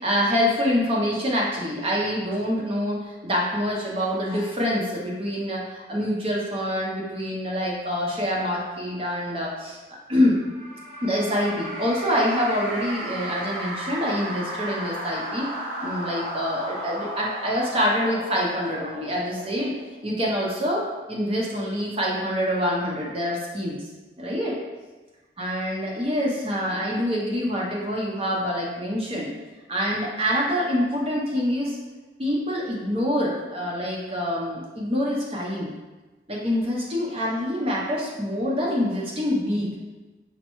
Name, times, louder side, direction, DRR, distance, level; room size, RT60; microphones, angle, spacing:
voice 1, 0.0-10.4 11.0-15.5 15.8-23.8 24.2-24.5 25.4-29.3 29.7-31.8 32.2-35.7 36.3-39.7, equal, 30° right, -3 dB, 0.7 m, -26 dB
sound 1, 10.4-20.1, right 1 dB, 50° right, 1.0 m, -34 dB
5.3 x 2.2 x 3.0 m, 1.2 s
head